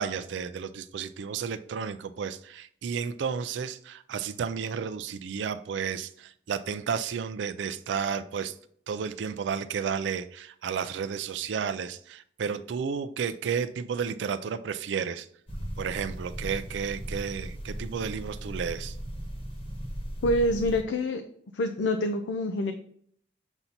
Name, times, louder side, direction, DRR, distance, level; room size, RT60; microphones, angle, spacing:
voice 1, 0.0-8.5 8.9-15.3 15.8-19.0, right 6 dB, 75° right, 9 dB, 0.3 m, -32 dB
sound 1, 15.5-20.8, equal, 30° left, 1.1 m, -37 dB
voice 2, 20.2-21.2 21.5-22.7, left 1 dB, 75° left, 6 dB, 0.5 m, -26 dB
7.0 x 2.7 x 5.7 m, 0.63 s
head